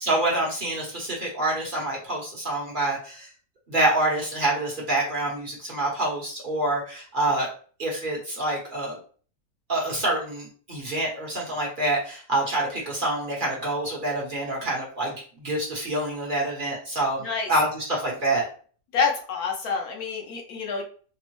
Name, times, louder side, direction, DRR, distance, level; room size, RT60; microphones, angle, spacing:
voice 1, 0.0-3.3 3.7-7.5 7.8-9.0 9.7-18.5, right 1 dB, 40° right, -3 dB, 1.0 m, -26 dB
voice 2, 18.9-20.8, left 5 dB, 90° left, 1 dB, 1.3 m, -27 dB
3.5 x 2.0 x 3.0 m, 0.41 s
omnidirectional pair, 1.5 m